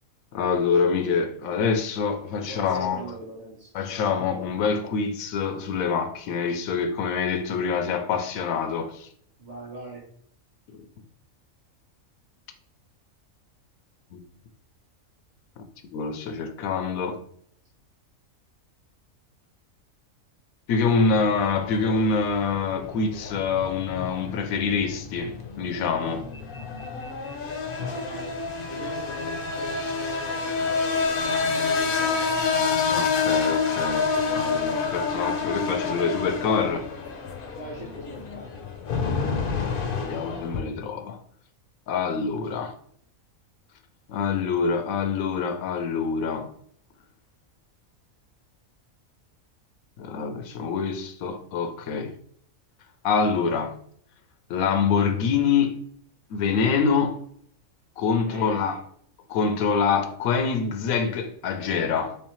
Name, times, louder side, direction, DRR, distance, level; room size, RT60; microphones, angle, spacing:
voice 1, 0.3-3.0 3.7-9.1 10.7-10.8 14.1-14.2 15.6-15.7 15.9-17.2 20.7-26.3 32.9-36.9 40.0-41.2 41.9-42.8 44.1-46.5 50.0-52.1 53.0-53.8 54.5-55.8 56.3-57.2 58.0-58.8 59.3-62.2, left 5 dB, 90° left, 1.0 m, -25 dB
voice 2, 2.3-3.7 9.4-10.1 27.7-30.6 31.0-32.9 37.5-38.5 58.3-58.6, equal, 40° right, 0.7 m, -41 dB
sound 1, 20.8-40.6, left 5 dB, 60° left, 0.6 m, -28 dB
3.3 x 3.1 x 3.0 m
omnidirectional pair, 1.4 m